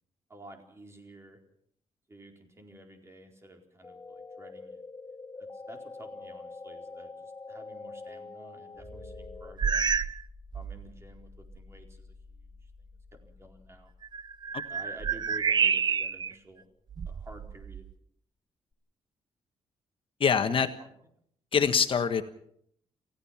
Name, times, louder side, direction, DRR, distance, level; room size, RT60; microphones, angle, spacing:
voice 1, 0.3-1.4 2.1-4.8 5.4-10.0 10.5-13.9 14.5-16.7 17.0-17.9 20.8-20.9, right 1 dB, 25° right, 3 dB, 4.3 m, -51 dB
sound 1, 3.8-9.5, left 3 dB, 25° left, 1.2 m, -44 dB
sound 2, 8.8-17.2 18.7-18.8, left 2 dB, 5° left, 2.9 m, -53 dB
sound 3, 9.6-10.2 10.5-10.9 11.5-11.6 14.0-16.3 16.9-17.9, right 6 dB, 40° right, 0.7 m, -29 dB
voice 2, 20.2-20.7 21.5-22.2, left 6 dB, 55° left, 8 dB, 1.4 m, -24 dB
29.0 x 15.5 x 5.9 m, 0.68 s
cardioid pair, 115°, 11 cm